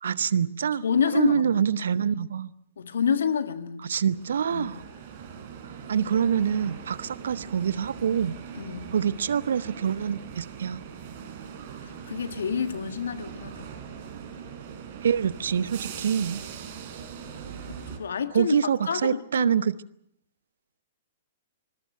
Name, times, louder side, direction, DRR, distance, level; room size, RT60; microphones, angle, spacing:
voice 1, 0.0-0.8 1.1-2.5 3.8-4.8 5.9-8.4 8.9-10.8 15.0-16.4 18.3-19.7, right 8 dB, 65° right, 17 dB, 0.8 m, -25 dB
voice 2, 0.8-1.6 2.8-4.0 4.5-4.7 8.6-8.9 11.8-13.7 17.7-18.5 18.9-19.6, left 7 dB, 70° left, 10 dB, 1.6 m, -28 dB
sound 1, 4.1-18.0, right 7 dB, 50° right, 4.7 m, -41 dB
26.0 x 20.5 x 6.5 m, 0.72 s
figure-of-eight pair, 115°, 0 cm